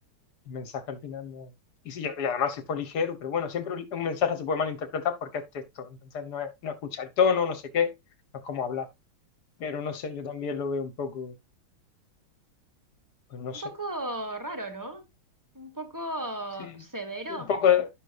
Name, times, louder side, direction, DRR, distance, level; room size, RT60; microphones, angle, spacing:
voice 1, 0.5-1.5 1.9-5.9 6.1-7.9 8.4-8.9 9.6-11.3 13.3-13.6 16.6-16.7 17.3-17.9, left 7 dB, 55° left, 1.7 m, -29 dB
voice 2, 13.5-15.1 15.5-17.5, right 1 dB, 10° right, 1.0 m, -35 dB
11.0 x 6.6 x 2.5 m
omnidirectional pair, 2.3 m